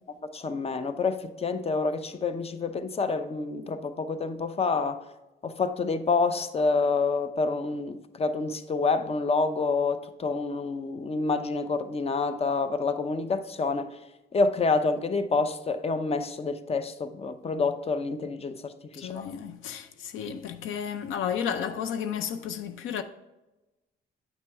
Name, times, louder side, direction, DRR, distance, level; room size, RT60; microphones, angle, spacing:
voice 1, 0.3-5.0 5.4-13.9 14.3-19.3, left 4 dB, 30° left, 0.7 m, -28 dB
voice 2, 19.0-23.0, left 8 dB, 85° left, 0.6 m, -32 dB
9.1 x 6.0 x 3.5 m
cardioid pair, 90°, 20 cm